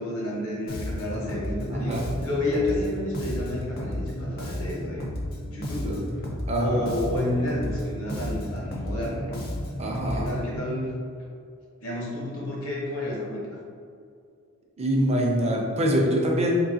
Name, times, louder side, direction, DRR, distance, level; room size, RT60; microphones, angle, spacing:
voice 1, 0.0-5.0 5.4-5.9 6.6-9.4 10.1-10.9 11.8-13.6, left 1 dB, 75° left, -4 dB, 1.0 m, -30 dB
Bass guitar, 0.7-10.6, equal, 45° left, 0.5 m, -33 dB
voice 2, 1.7-2.0 5.8-6.0 6.5-7.0 9.8-10.3 14.8-16.6, equal, 30° right, -1 dB, 0.5 m, -24 dB
3.8 x 2.7 x 2.7 m, 2.3 s
head